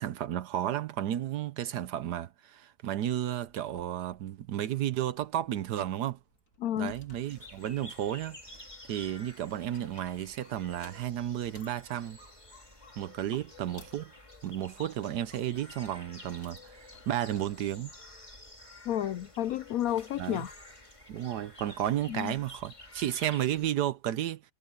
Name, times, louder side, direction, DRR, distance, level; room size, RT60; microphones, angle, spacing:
voice 1, 0.0-6.2 6.8-8.4 8.9-12.2 13.0-14.1 14.4-17.9 20.2-20.4 21.1-24.4, right 11 dB, 70° right, 1.2 m, -33 dB
sound 1, 3.5-18.5, left 2 dB, 40° left, 3.9 m, -62 dB
voice 2, 6.6-7.0 18.8-20.5 22.1-22.3, left 11 dB, 80° left, 0.8 m, -31 dB
sound 2, 7.2-23.7, left 1 dB, 15° left, 3.3 m, -51 dB
omnidirectional pair, 2.1 m